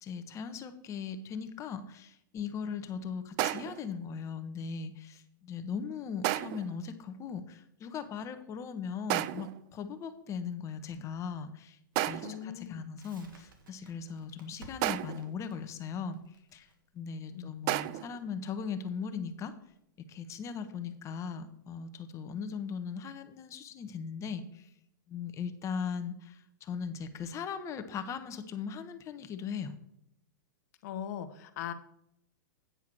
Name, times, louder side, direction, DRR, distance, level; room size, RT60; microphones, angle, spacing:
voice 1, 0.0-11.8 12.1-16.2 16.5-16.7 16.9-19.5 20.1-24.7 25.1-29.7, left 6 dB, 30° left, 9 dB, 0.9 m, -39 dB
sound 1, 3.4-3.9 6.2-6.8 9.1-9.6 12.0-12.5 14.8-15.3 17.7-18.2, right 15 dB, 40° right, 0.4 m, -32 dB
voice 2, 12.2-12.9 17.3-17.5 30.8-31.7, left 9 dB, 55° left, 10 dB, 1.0 m, -40 dB
Crackle, 13.0-19.8, right 2 dB, 80° right, 1.9 m, -57 dB
9.2 x 4.7 x 6.0 m, 0.78 s
hypercardioid pair, 115°, 11 cm